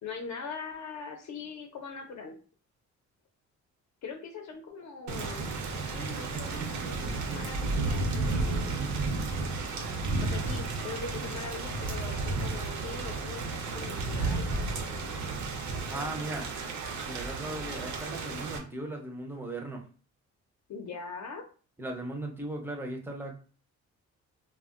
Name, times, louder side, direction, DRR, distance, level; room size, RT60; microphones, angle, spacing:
voice 1, 0.0-2.4 4.0-5.5 5.9-8.8 10.2-15.0 20.7-21.4, left 5 dB, 70° left, 2 dB, 0.6 m, -42 dB
Thunder / Rain, 5.1-18.6, right 3 dB, 75° right, 0.6 m, -32 dB
voice 2, 15.9-16.5 17.0-19.8 21.8-23.3, right 2 dB, 10° right, 2 dB, 0.4 m, -37 dB
2.1 x 2.1 x 3.5 m, 0.38 s
cardioid pair, 165°, 29 cm